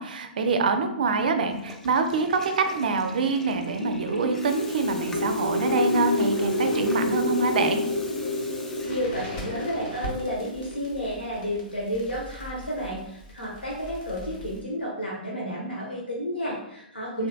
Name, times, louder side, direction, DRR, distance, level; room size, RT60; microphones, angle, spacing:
voice 1, 0.0-7.8 17.2-17.3, right 3 dB, 60° right, 7 dB, 0.4 m, -25 dB
Water tap faucet / Toilet flush, 1.4-9.4, left 2 dB, 5° left, 0.3 m, -43 dB
sound 1, 3.3-11.4, left 1 dB, 60° left, 1.4 m, -29 dB
voice 2, 8.8-17.3, equal, 90° left, -4 dB, 0.7 m, -31 dB
Crackle, 8.8-14.6, equal, 40° left, 1.0 m, -41 dB
3.2 x 2.9 x 2.2 m, 0.78 s
figure-of-eight pair, 115°, 5 cm